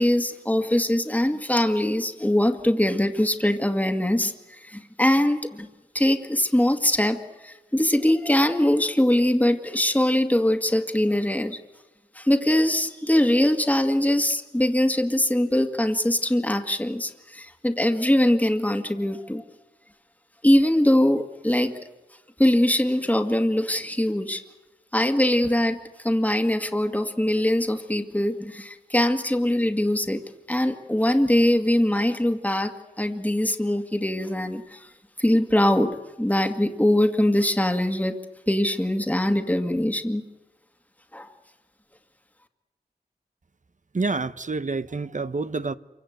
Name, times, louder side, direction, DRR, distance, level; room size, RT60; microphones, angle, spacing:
voice 1, 0.0-5.7 5.9-11.6 12.2-19.4 20.4-21.8 22.4-24.4 24.9-30.2 30.5-32.7 33.0-34.8 35.2-38.2 38.5-40.2 41.1-41.3, left 1 dB, 10° left, 2.0 m, -22 dB
voice 2, 43.9-45.8, right 3 dB, 50° right, 1.0 m, -28 dB
27.5 x 24.5 x 8.1 m
cardioid pair, 50°, 16 cm